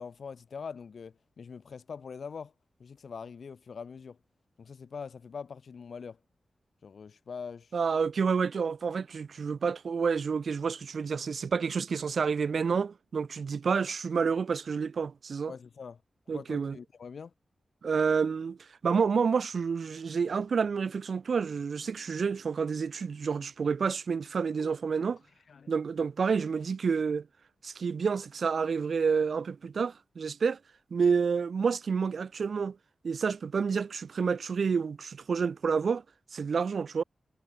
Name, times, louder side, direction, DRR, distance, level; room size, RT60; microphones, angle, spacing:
voice 1, 0.0-2.5 2.8-4.2 4.6-6.2 6.8-7.7 15.5-16.0 16.3-17.3 24.6-24.7 25.5-25.7, left 6 dB, 70° left, 1.6 m, -43 dB
voice 2, 7.7-15.5 16.3-16.8 17.8-18.6 18.8-25.2 25.7-27.3 27.6-30.6 30.9-32.8 33.0-36.0 36.3-37.0, right 5 dB, 70° right, 0.6 m, -29 dB
wide cardioid pair, 85°, 0 cm